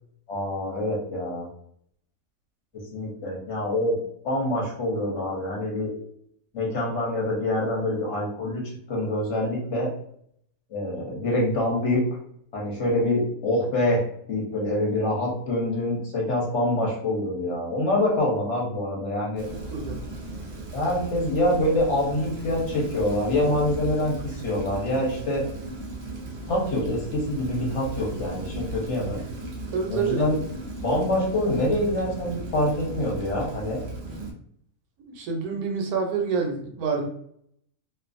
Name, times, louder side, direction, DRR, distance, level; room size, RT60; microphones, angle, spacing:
voice 1, 0.3-1.5 2.7-4.0 4.2-5.9 6.5-8.6 8.9-9.9 10.7-12.0 12.5-14.0 14.3-19.4 20.7-25.4 26.5-29.2 29.9-30.4 30.8-33.8, left 1 dB, 55° left, -3 dB, 0.9 m, -25 dB
Rain, 19.4-34.3, right 2 dB, 60° right, 0.5 m, -37 dB
voice 2, 29.7-30.3 35.0-37.1, right 5 dB, 80° right, 2 dB, 1.1 m, -27 dB
2.5 x 2.4 x 2.4 m, 0.67 s
omnidirectional pair, 1.6 m